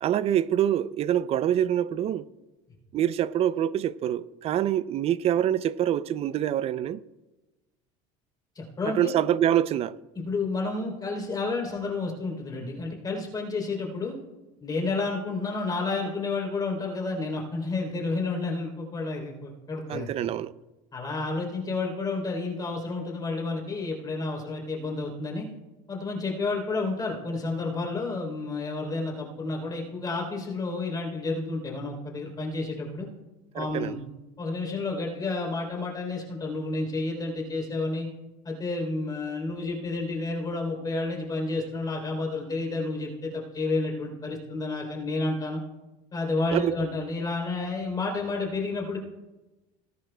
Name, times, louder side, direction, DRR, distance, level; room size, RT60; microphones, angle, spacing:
voice 1, 0.0-2.2 2.9-7.0 8.9-10.0 19.9-20.5 33.5-34.0 46.5-46.7, right 11 dB, 40° right, 0.4 m, -25 dB
voice 2, 8.6-9.1 10.2-14.2 14.6-20.1 20.9-25.5 25.9-33.1 33.5-34.0 34.4-38.1 38.5-45.6 46.1-49.0, left 3 dB, 25° left, 3.3 m, -30 dB
19.0 x 10.5 x 2.3 m
cardioid pair, 130°, 16 cm